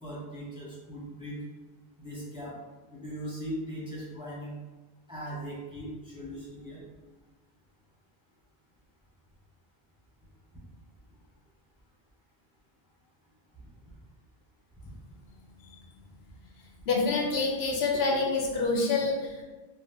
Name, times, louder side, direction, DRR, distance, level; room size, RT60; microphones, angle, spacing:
voice 1, 0.0-1.4 2.0-2.6 2.9-4.5 5.1-6.8 13.5-13.7 14.8-14.9, equal, 5° right, -7 dB, 0.8 m, -39 dB
voice 2, 16.9-19.4, left 3 dB, 80° left, 0 dB, 0.8 m, -27 dB
2.5 x 2.1 x 3.5 m, 1.2 s
omnidirectional pair, 1.0 m